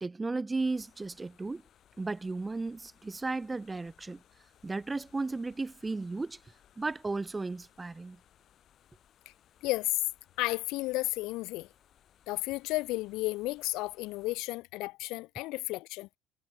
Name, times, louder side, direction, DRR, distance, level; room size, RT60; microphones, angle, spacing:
voice 1, 0.0-1.6 2.0-4.2 4.6-6.4 6.8-8.2, right 3 dB, 10° right, 0.6 m, -34 dB
Forest light wind through the leaves, 0.6-14.4, left 10 dB, 40° left, 4.8 m, -64 dB
voice 2, 9.6-9.9 10.4-11.7 12.3-16.1, left 20 dB, 70° left, 0.5 m, -33 dB
cardioid pair, 150°, 0 cm